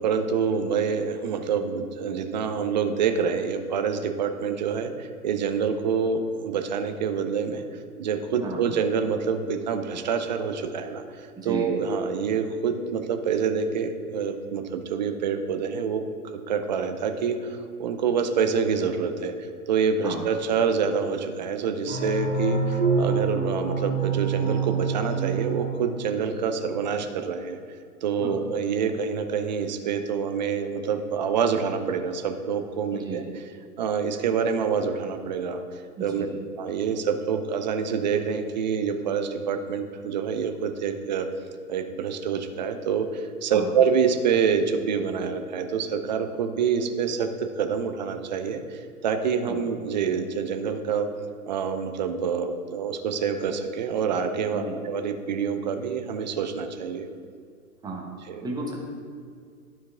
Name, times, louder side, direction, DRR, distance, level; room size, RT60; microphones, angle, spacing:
voice 1, 0.0-7.6 8.0-16.0 16.5-19.3 19.7-27.6 28.0-33.2 33.8-36.3 36.6-41.3 41.7-51.1 51.5-57.1 58.3-58.5, right 6 dB, 30° right, 7 dB, 0.5 m, -27 dB
voice 2, 11.4-11.7 20.0-20.2 28.2-28.4 32.9-33.2 36.0-36.3 43.5-43.7 49.4-49.6 54.5-54.8 57.8-58.0 58.4-58.7, right 2 dB, 10° right, -2 dB, 0.9 m, -34 dB
sound 1, 21.9-26.4, right 4 dB, 20° left, 1.4 m, -26 dB
12.0 x 4.6 x 3.5 m, 2.2 s
figure-of-eight pair, 110°, 47 cm